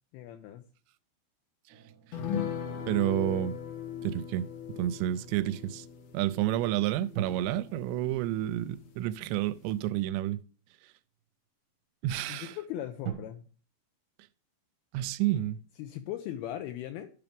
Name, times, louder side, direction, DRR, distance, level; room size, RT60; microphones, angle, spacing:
voice 1, 0.1-0.7 2.6-3.1 12.3-13.4 15.8-17.1, left 12 dB, 90° left, 2.3 m, -39 dB
sound 1, 1.7-4.3 7.1-10.5 11.2-11.3 13.0-13.1, right 11 dB, 55° right, 2.6 m, -44 dB
sound 2, 2.1-8.9 9.2-9.3 9.7-9.8, left 8 dB, 65° left, 2.0 m, -39 dB
voice 2, 2.9-3.5 4.0-4.4 4.8-5.9 6.1-10.4 12.0-12.6 14.9-15.6, right 13 dB, 85° right, 2.8 m, -30 dB
12.5 x 5.8 x 3.5 m
omnidirectional pair, 5.1 m